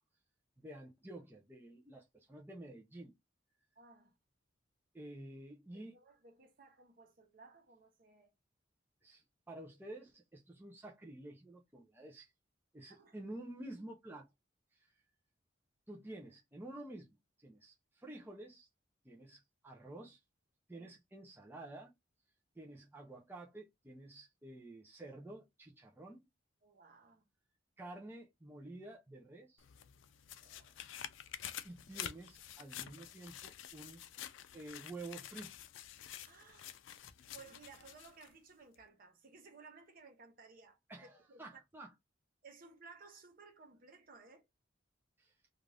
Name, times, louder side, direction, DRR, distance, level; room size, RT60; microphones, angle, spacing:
voice 1, 0.6-3.1 4.9-5.9 9.0-12.3 12.7-14.3 14.7-14.9 15.9-17.2 17.4-18.7 19.0-20.2 20.7-21.9 22.5-26.3 27.8-29.6 31.6-34.0 34.5-35.5 40.9-41.9 45.2-45.3, right 2 dB, 10° right, 0.5 m, -50 dB
voice 2, 3.8-4.1 5.7-8.3 12.9-13.2 20.7-20.9 22.6-22.8 26.6-27.3 30.4-30.8 31.9-32.0 36.2-36.8 37.3-40.8 41.3-41.6 42.4-44.5, right 4 dB, 50° right, 0.8 m, -59 dB
sound 1, 29.6-38.3 38.7-38.8, left 10 dB, 85° left, 0.4 m, -49 dB
2.5 x 2.4 x 3.2 m
head